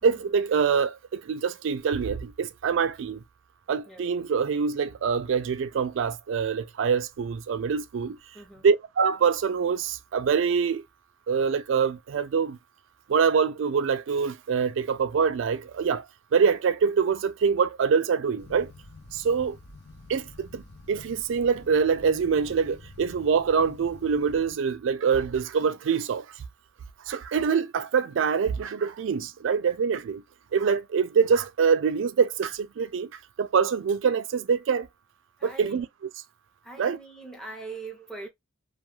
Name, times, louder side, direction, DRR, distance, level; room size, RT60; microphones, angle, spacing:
voice 1, 0.0-3.2 3.7-8.2 8.6-10.8 11.3-12.6 13.1-16.1 16.3-18.7 19.1-19.6 20.1-20.6 20.9-26.3 27.1-30.2 30.5-34.9 35.4-35.9 36.8-37.0, right 6 dB, 65° right, 0.3 m, -25 dB
voice 2, 8.3-8.7 35.4-35.8 36.6-38.3, right 3 dB, ahead, 0.7 m, -42 dB
sound 1, 18.4-24.5, left 3 dB, 55° left, 0.6 m, -48 dB
2.3 x 2.3 x 2.9 m
head